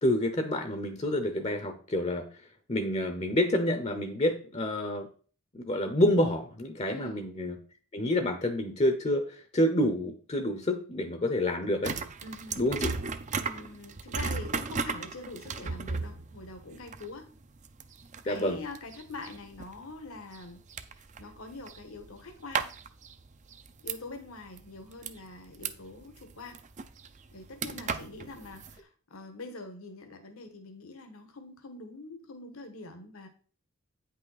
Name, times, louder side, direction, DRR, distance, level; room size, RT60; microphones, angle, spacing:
voice 1, 0.0-2.3 2.7-5.1 5.5-7.5 7.9-12.0 12.6-12.9 18.3-18.6, left 1 dB, 30° left, 7 dB, 0.7 m, -28 dB
voice 2, 6.9-7.2 12.2-12.6 13.3-17.3 18.2-22.7 23.8-26.6 27.3-33.3, left 3 dB, 75° left, 6 dB, 1.4 m, -44 dB
sound 1, 11.8-24.2 24.6-28.8, right 5 dB, 35° right, 0.5 m, -36 dB
9.2 x 5.5 x 4.1 m, 0.41 s
head